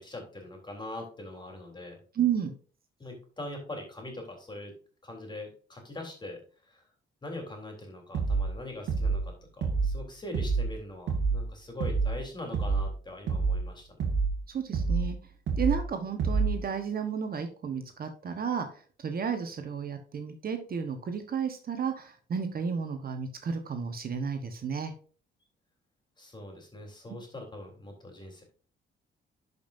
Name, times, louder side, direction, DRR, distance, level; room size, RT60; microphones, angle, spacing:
voice 1, 0.0-2.0 3.0-4.7 5.0-6.8 7.2-14.1 26.2-28.4, left 1 dB, 20° left, 1 dB, 3.6 m, -42 dB
voice 2, 2.1-2.5 14.5-15.2 15.6-24.9, right 7 dB, 50° right, 7 dB, 1.2 m, -32 dB
sound 1, 8.1-8.5 8.9-9.3 9.6-10.0 10.3-10.7 11.1-11.4 11.8-12.2 12.5-12.9 13.3-13.6 14.0-14.4 14.7-15.1 15.5-15.8 16.2-16.6, right 4 dB, 70° right, 1.8 m, -27 dB
11.0 x 5.4 x 2.6 m, 0.41 s
cardioid pair, 90°, 20 cm